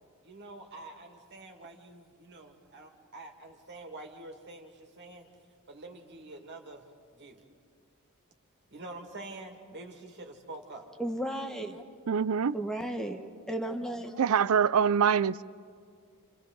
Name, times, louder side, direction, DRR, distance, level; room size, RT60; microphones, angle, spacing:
voice 1, 0.2-5.3 5.7-6.8 7.1-7.4 8.7-10.9, right 2 dB, 50° right, 2.2 m, -46 dB
voice 2, 11.0-11.8 12.5-14.2, right 1 dB, 5° left, 1.1 m, -34 dB
voice 3, 12.1-12.6 14.2-15.4, right 7 dB, 70° right, 0.4 m, -24 dB
29.5 x 26.5 x 4.0 m
head